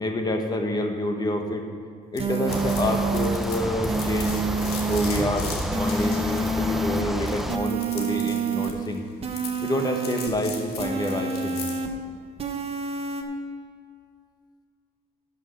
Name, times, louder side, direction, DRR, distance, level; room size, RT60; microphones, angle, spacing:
voice 1, 0.0-1.6 2.1-4.4 4.8-5.5 5.7-9.0 9.6-11.6, left 1 dB, 25° left, 4 dB, 1.2 m, -28 dB
sound 1, 2.2-11.9, left 5 dB, 70° left, 1.8 m, -39 dB
sound 2, 2.2-3.4 3.9-5.2 5.7-7.0 7.5-8.7 9.2-10.3 10.8-11.9 12.4-13.2, right 4 dB, 35° right, 1.1 m, -28 dB
sound 3, 2.5-7.6, equal, ahead, 0.5 m, -30 dB
12.0 x 6.1 x 5.8 m, 2.2 s
cardioid pair, 110°, 17 cm